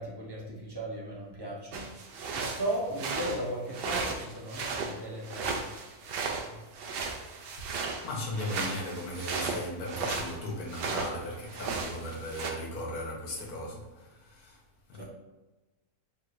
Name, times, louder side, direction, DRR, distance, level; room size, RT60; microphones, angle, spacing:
voice 1, 0.0-1.9 2.3-5.7 14.9-15.1, right 1 dB, 25° right, 0.6 m, -36 dB
sound 1, 1.7-11.2 11.5-12.5, right 4 dB, 75° right, 0.5 m, -35 dB
voice 2, 6.5-6.9 7.5-7.6 8.0-14.6 14.9-15.1, left 1 dB, 75° left, 1.5 m, -37 dB
4.5 x 3.5 x 2.6 m
omnidirectional pair, 1.6 m